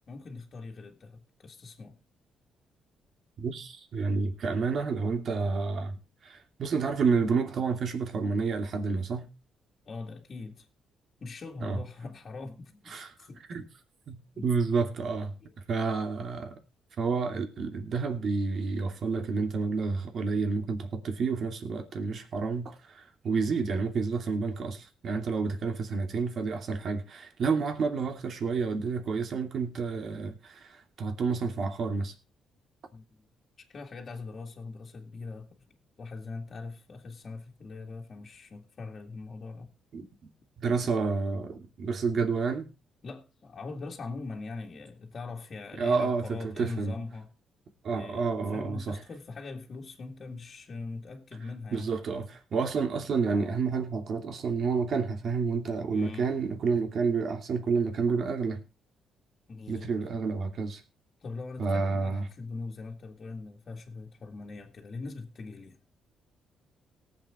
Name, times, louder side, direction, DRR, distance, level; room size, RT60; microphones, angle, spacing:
voice 1, 0.1-2.0 9.9-10.7 11.2-13.6 14.3-14.5 15.4-15.5 32.9-33.0 33.7-35.6 36.0-39.7 43.0-47.3 47.9-51.9 55.9-56.3 59.5-59.9 61.2-65.8, left 3 dB, 45° left, 2.1 m, -41 dB
voice 2, 3.4-6.0 6.2-9.3 11.6-11.8 12.9-13.1 13.5-13.6 14.1-15.3 15.7-16.6 17.0-32.1 39.9-40.1 40.6-42.7 45.8-46.3 46.6-46.9 47.8-49.0 51.7-58.6 59.7-60.8 61.6-62.2, right 4 dB, 55° right, 2.8 m, -29 dB
18.5 x 7.8 x 3.8 m
cardioid pair, 90°, 0 cm